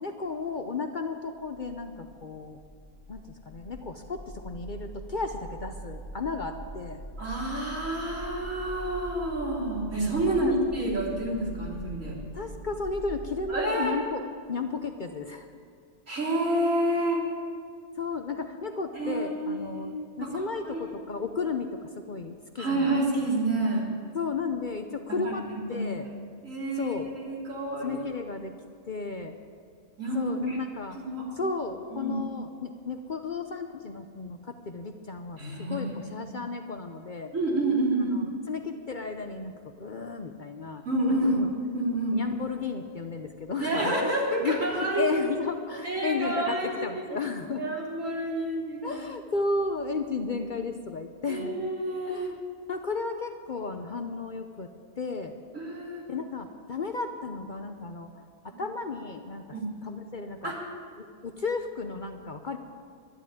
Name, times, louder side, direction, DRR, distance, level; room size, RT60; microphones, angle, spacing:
voice 1, 0.0-2.6 3.1-7.0 10.2-10.6 12.3-14.2 14.5-15.5 18.0-23.0 24.1-26.1 26.8-27.1 27.8-28.5 28.9-29.3 30.1-31.0 31.3-35.4 35.7-37.3 38.0-40.8 41.1-41.5 42.1-44.1 44.4-47.7 48.8-51.6 52.1-52.4 52.7-54.7 55.0-55.3 56.1-59.6 59.8-60.5 61.0-62.6, left 4 dB, 45° left, 6 dB, 0.7 m, -34 dB
sound 1, 1.3-13.5, right 1 dB, 30° right, 2.5 m, -43 dB
voice 2, 7.2-12.2 13.5-13.9 16.1-17.2 18.9-20.9 22.6-23.9 25.2-25.9 26.4-28.0 30.0-30.6 30.9-31.3 31.9-32.2 35.4-36.0 37.3-38.2 40.9-42.2 43.6-45.2 45.8-46.8 47.1-47.2 47.6-49.1 51.3-52.3 55.5-56.0 58.5-58.6 59.5-59.7 60.4-60.5, right 1 dB, 75° right, -5 dB, 3.9 m, -29 dB
12.0 x 11.0 x 8.8 m, 2.1 s
omnidirectional pair, 1.3 m